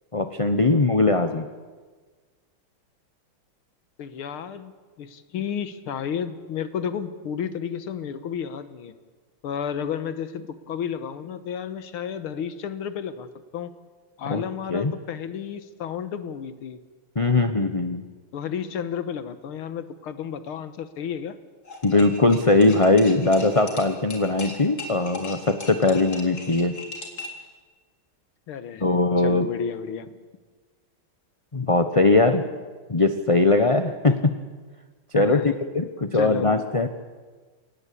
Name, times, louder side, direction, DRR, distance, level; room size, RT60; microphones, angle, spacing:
voice 1, 0.1-1.5 14.3-14.4 14.7-14.9 17.1-18.0 21.8-26.7 28.8-29.5 31.5-32.4 32.9-34.1 35.1-36.9, left 2 dB, 25° left, 8 dB, 0.7 m, -20 dB
voice 2, 4.0-4.7 5.0-9.0 9.4-13.3 13.5-13.7 14.2-16.8 18.3-21.4 25.9-26.0 28.5-30.1 34.1-34.2 35.2-35.6 36.1-36.5, left 8 dB, 90° left, 11 dB, 2.1 m, -32 dB
sound 1, 21.7-27.5, left 2 dB, 45° left, 4.0 m, -38 dB
30.0 x 18.0 x 8.5 m, 1.4 s
omnidirectional pair, 2.3 m